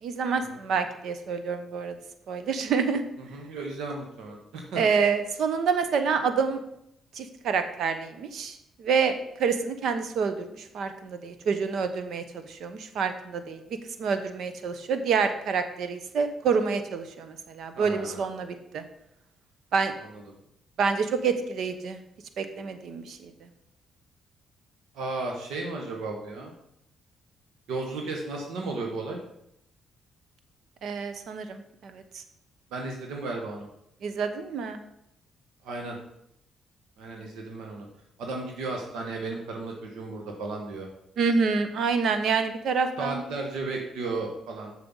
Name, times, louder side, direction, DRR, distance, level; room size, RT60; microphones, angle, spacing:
voice 1, 0.0-1.9 2.3-3.1 4.8-6.6 7.1-9.1 9.4-13.6 14.0-18.8 19.7-19.9 20.8-22.0 22.4-23.3 30.8-32.2 34.0-34.8 41.2-43.2, right 5 dB, 70° right, 9 dB, 0.9 m, -27 dB
voice 2, 3.2-4.8 17.7-18.3 20.0-20.2 24.9-26.5 27.7-29.2 32.7-33.7 35.6-36.0 37.0-37.9 38.2-40.9 43.0-44.7, right 3 dB, 85° right, 1 dB, 1.4 m, -34 dB
7.1 x 6.6 x 5.6 m, 0.79 s
cardioid pair, 90°, 0 cm